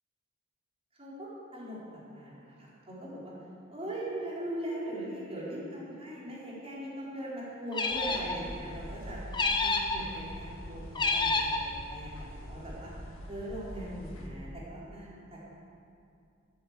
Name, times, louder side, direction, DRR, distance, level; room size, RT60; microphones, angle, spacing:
voice 1, 1.0-1.8 2.1-3.3 3.7-9.2 9.6-12.9 13.3-15.5, right 1 dB, 30° right, -7 dB, 4.2 m, -40 dB
sound 1, 7.7-8.4 9.3-10.0 10.9-11.6, left 3 dB, 20° left, 1.0 m, -28 dB
sound 2, 7.9-14.3, equal, 85° left, 1.7 m, -44 dB
13.0 x 9.1 x 8.2 m, 2.5 s
head